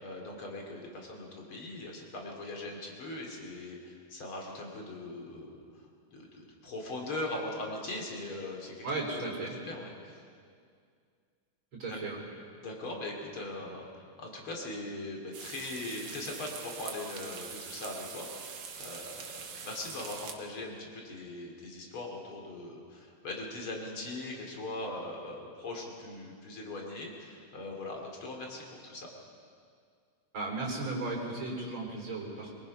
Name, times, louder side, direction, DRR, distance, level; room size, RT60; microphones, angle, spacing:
voice 1, 0.0-5.6 6.1-10.2 11.9-12.0 12.6-19.3 19.6-29.1, left 2 dB, 75° left, 0 dB, 3.6 m, -40 dB
voice 2, 8.8-9.6 11.7-12.2 30.3-32.5, right 2 dB, 65° right, -2 dB, 4.7 m, -35 dB
sound 1, 15.3-20.3, right 6 dB, 90° right, 2.3 m, -43 dB
23.0 x 21.0 x 5.6 m, 2.2 s
omnidirectional pair, 2.3 m